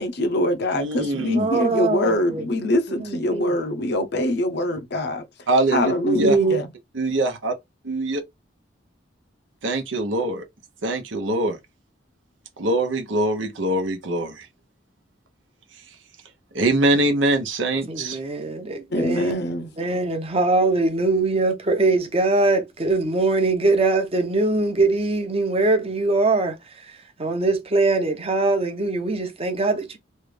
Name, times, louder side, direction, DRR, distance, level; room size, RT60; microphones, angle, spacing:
voice 1, 0.0-5.2 5.7-6.7 18.9-19.7, left 1 dB, 60° left, 0.6 m, -24 dB
voice 2, 0.7-1.5 5.5-6.4 6.9-7.5 7.8-8.2 9.6-10.4 10.8-11.6 12.6-14.5 16.5-18.2, right 1 dB, 85° right, 0.9 m, -23 dB
voice 3, 1.3-2.5 2.9-3.6 6.1-6.6 17.9-26.6 27.2-30.0, right 3 dB, 30° right, 0.8 m, -22 dB
3.1 x 2.4 x 3.3 m
head